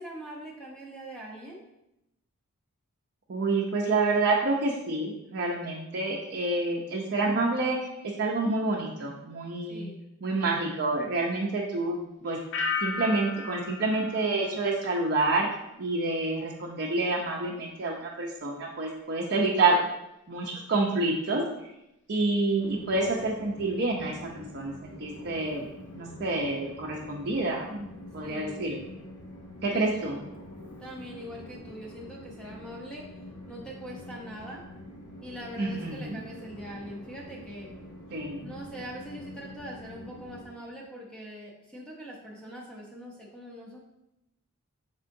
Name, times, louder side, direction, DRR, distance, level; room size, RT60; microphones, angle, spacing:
voice 1, 0.0-1.6 9.7-10.0 19.6-19.8 28.2-28.7 29.7-30.1 30.8-33.1 33.5-34.6 35.2-37.7 38.4-43.8, equal, 5° left, -3 dB, 0.6 m, -42 dB
voice 2, 3.3-7.9 8.2-9.9 10.2-12.4 12.8-15.5 15.8-19.8 20.3-21.4 22.1-25.7 25.9-27.9 28.1-28.8 29.6-30.2 35.6-36.2 38.1-38.5, right 2 dB, 50° right, -2 dB, 0.5 m, -28 dB
sound 1, 12.5-15.4 15.7-16.2, left 4 dB, 55° left, 0.5 m, -35 dB
Train, 22.6-40.4, left 1 dB, 80° left, 0.9 m, -46 dB
5.4 x 3.6 x 2.6 m, 0.87 s
head